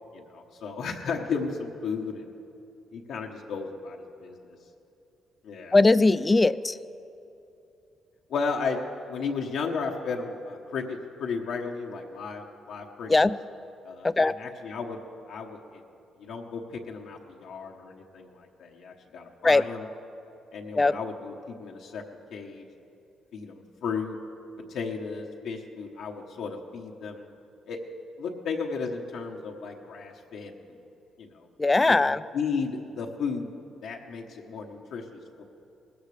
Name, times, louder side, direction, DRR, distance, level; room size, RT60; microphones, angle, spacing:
voice 1, 0.1-2.3 2.9-4.6 5.4-5.7 6.5-6.6 8.3-13.1 13.8-15.0 15.3-15.8 16.2-19.9 20.5-22.0 22.3-22.7 23.3-24.2 24.7-27.3 27.7-30.8 31.2-31.5 32.1-35.4, left 5 dB, 75° left, 0 dB, 1.0 m, -34 dB
voice 2, 5.7-6.8 13.1-13.4 14.0-14.3 19.4-19.6 20.7-21.0 31.6-32.2, left 3 dB, 20° left, 16 dB, 0.3 m, -20 dB
19.5 x 15.0 x 3.3 m, 2.8 s
cardioid pair, 90°, 0 cm